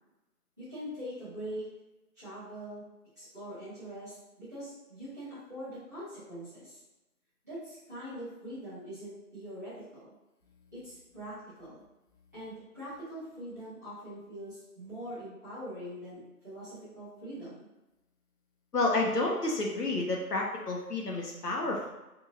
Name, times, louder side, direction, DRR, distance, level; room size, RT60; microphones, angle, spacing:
voice 1, 0.6-1.7 2.1-2.8 3.1-6.8 7.4-10.1 10.7-11.8 12.3-17.7, equal, 10° right, -19 dB, 1.3 m, -43 dB
voice 2, 18.7-21.9, left 2 dB, 80° left, -1 dB, 1.0 m, -30 dB
3.6 x 2.6 x 2.9 m, 0.98 s
figure-of-eight pair, 175°, 46 cm